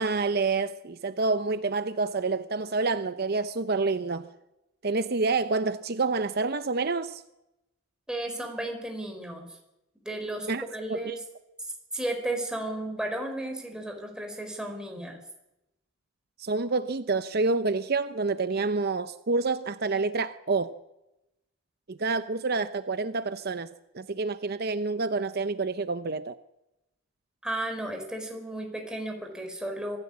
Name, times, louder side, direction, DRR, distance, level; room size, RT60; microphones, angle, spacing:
voice 1, 0.0-4.3 4.8-7.2 10.5-10.6 10.9-11.2 16.4-20.8 21.9-23.7 23.9-26.4, right 3 dB, 50° right, 0.8 m, -28 dB
voice 2, 8.1-9.5 10.0-11.2 11.9-15.2 27.4-30.0, right 1 dB, 5° right, 4.8 m, -34 dB
25.5 x 15.0 x 8.6 m
head